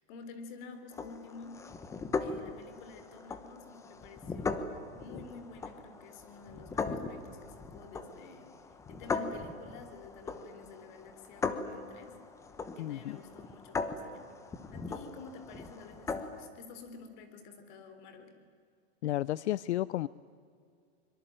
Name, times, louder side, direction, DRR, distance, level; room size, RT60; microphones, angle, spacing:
voice 1, 0.0-1.6 2.2-8.5 8.9-12.2 12.8-14.3 14.7-18.3, left 4 dB, 45° left, 9 dB, 3.8 m, -50 dB
sound 1, 0.9-16.5, left 4 dB, 10° left, 1.0 m, -39 dB
voice 2, 12.8-13.2 19.0-20.1, left 14 dB, 85° left, 20 dB, 0.6 m, -32 dB
24.5 x 23.0 x 8.9 m, 2.2 s
supercardioid pair, 165°, 33 cm